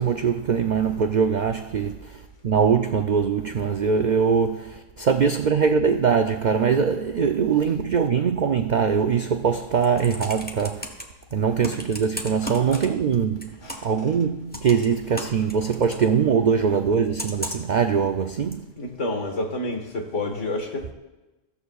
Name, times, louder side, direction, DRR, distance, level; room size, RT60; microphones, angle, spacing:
voice 1, 0.0-10.9 11.3-13.5 13.8-18.6, right 6 dB, 85° right, 0.4 m, -22 dB
Computer keyboard, 9.6-11.0 11.6-13.2 13.4-14.0 14.5-16.1 17.2-17.8 18.5-18.6, equal, 10° left, 1.1 m, -35 dB
voice 2, 18.8-20.9, left 2 dB, 65° left, 1.9 m, -29 dB
15.0 x 14.0 x 2.4 m
omnidirectional pair, 1.4 m